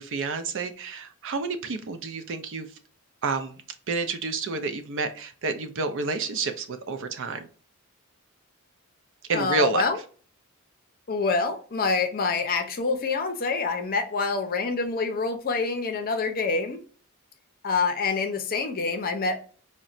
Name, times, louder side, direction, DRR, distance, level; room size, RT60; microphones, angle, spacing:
voice 1, 0.0-2.7 3.2-3.6 3.9-7.5 9.3-9.8, right 3 dB, 55° right, 0.5 m, -29 dB
voice 2, 9.3-10.0 11.1-16.8 17.6-19.4, left 4 dB, 40° left, 0.5 m, -26 dB
3.9 x 2.1 x 2.4 m
head